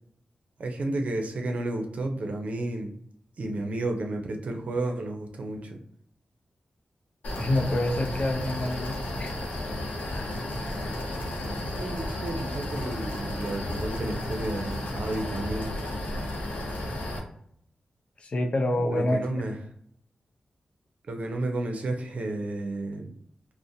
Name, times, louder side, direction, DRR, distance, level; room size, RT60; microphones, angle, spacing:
voice 1, 0.6-3.0 3.4-5.8 11.6-15.7 18.9-19.6 21.1-23.1, right 2 dB, 65° right, 3 dB, 0.5 m, -32 dB
sound 1, 7.2-17.2, left 1 dB, 85° left, 0.7 m, -33 dB
voice 2, 7.4-9.3 10.1-10.3 18.2-19.2, left 1 dB, 50° left, 4 dB, 0.5 m, -27 dB
2.5 x 2.1 x 2.6 m, 0.68 s
cardioid pair, 80°, 3 cm